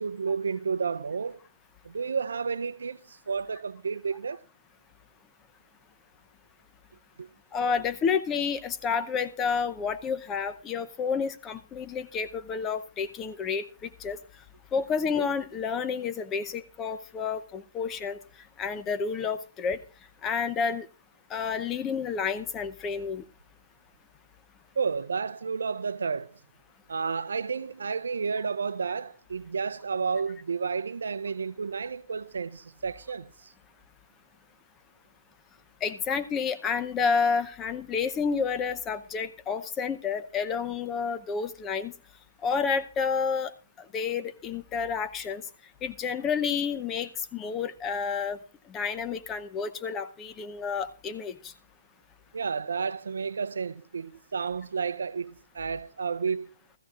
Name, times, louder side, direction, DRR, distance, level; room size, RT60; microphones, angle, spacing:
voice 1, 0.0-1.4 1.8-4.4 7.2-7.3 24.8-26.4 26.9-33.5 52.3-56.5, right 5 dB, 75° right, 0.6 m, -31 dB
voice 2, 7.5-14.2 14.7-18.2 18.6-19.8 20.2-20.9 21.3-23.2 35.8-41.9 42.4-43.5 43.9-45.4 45.8-48.4 48.7-51.5, left 6 dB, 20° left, 0.7 m, -30 dB
16.0 x 14.5 x 2.5 m
hypercardioid pair, 135°, 0 cm